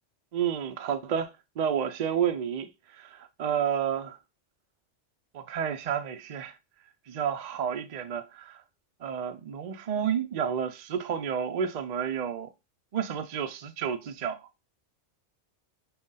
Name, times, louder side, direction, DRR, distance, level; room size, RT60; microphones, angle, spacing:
voice 1, 0.3-4.2 5.3-6.6 7.1-8.6 9.0-12.5 12.9-14.5, right 8 dB, 60° right, 0.4 m, -30 dB
5.4 x 2.3 x 3.7 m
omnidirectional pair, 1.2 m